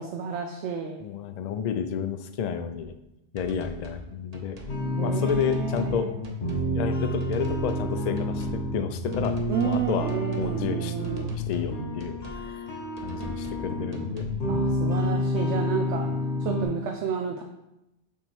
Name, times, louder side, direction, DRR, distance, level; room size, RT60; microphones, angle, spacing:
voice 1, 0.0-1.0 4.9-6.1 9.5-11.3 14.4-16.1 16.4-17.4, right 6 dB, 90° right, 4 dB, 0.9 m, -31 dB
voice 2, 1.0-2.9 3.3-4.6 5.0-6.1 6.7-10.1 10.4-11.0 11.3-12.7 13.0-14.3, left 7 dB, 60° left, 9 dB, 0.4 m, -31 dB
sound 1, 3.4-4.1 4.3-4.8 5.3-6.0 6.2-6.7 7.2-7.9 8.2-8.6 9.1-10.5 11.0-11.7 12.0-12.5 13.0-13.6 13.9-14.4, right 1 dB, 40° right, 0.8 m, -42 dB
sound 2, 4.7-16.7, left 1 dB, 80° left, 1.7 m, -29 dB
7.0 x 3.0 x 4.4 m, 0.91 s
omnidirectional pair, 1.2 m